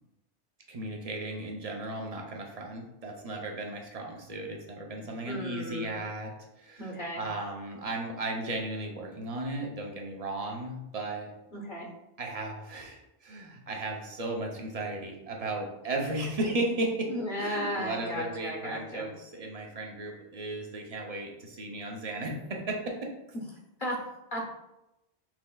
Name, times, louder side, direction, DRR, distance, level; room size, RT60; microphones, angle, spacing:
voice 1, 0.7-6.3 6.6-11.3 12.2-17.1 17.4-23.0, right 2 dB, 40° right, 0 dB, 0.7 m, -35 dB
voice 2, 5.2-5.9 6.8-7.2 11.5-11.9 17.1-19.1 23.8-24.0 24.3-24.5, equal, 50° left, -2 dB, 1.1 m, -34 dB
6.0 x 3.2 x 2.3 m, 0.90 s
omnidirectional pair, 1.1 m